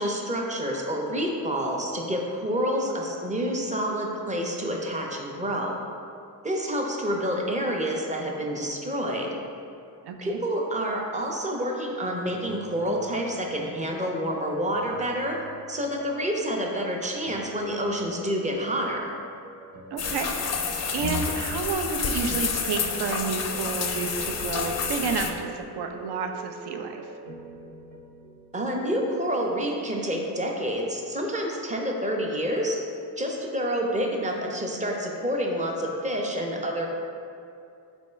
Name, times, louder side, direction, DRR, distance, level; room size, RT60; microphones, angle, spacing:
voice 1, 0.0-5.7 6.4-9.3 10.2-15.4 15.7-19.1 28.5-32.8 33.2-36.9, equal, 15° right, 0 dB, 0.5 m, -28 dB
voice 2, 10.0-10.4 19.9-20.3 20.9-27.1, right 5 dB, 70° right, 5 dB, 0.5 m, -30 dB
sound 1, 12.2-29.7, right 3 dB, 50° right, 0.9 m, -45 dB
sound 2, 20.0-25.3, left 5 dB, 40° left, 0.4 m, -29 dB
3.5 x 3.1 x 4.3 m, 2.5 s
cardioid pair, 90°, 42 cm